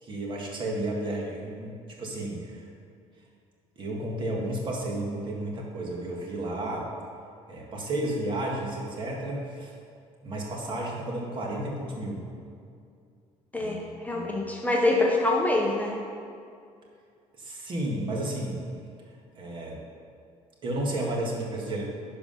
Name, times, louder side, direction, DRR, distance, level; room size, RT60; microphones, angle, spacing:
voice 1, 0.0-2.7 3.8-6.9 7.5-9.7 10.2-12.3 13.5-14.3 17.4-18.6 19.3-19.8 20.6-21.8, right 1 dB, 40° right, -1 dB, 1.7 m, -32 dB
voice 2, 13.5-16.0, left 2 dB, 10° left, -1 dB, 0.7 m, -25 dB
10.5 x 4.8 x 5.7 m, 2.4 s
cardioid pair, 145°, 13 cm